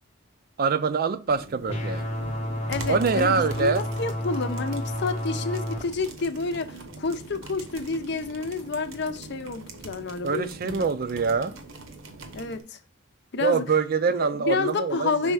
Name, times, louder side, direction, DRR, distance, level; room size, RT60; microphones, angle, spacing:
voice 1, 0.6-2.0 2.9-3.8 10.2-11.5 13.4-15.3, right 5 dB, 50° right, 0.4 m, -24 dB
sound 1, 1.3-12.6, right 2 dB, 85° right, 1.0 m, -43 dB
sound 2, 1.7-5.8, left 1 dB, 30° left, 0.9 m, -30 dB
voice 2, 2.7-10.9 12.3-12.8 13.3-13.7 14.2-15.3, left 4 dB, 60° left, 0.6 m, -29 dB
5.6 x 4.0 x 4.8 m
head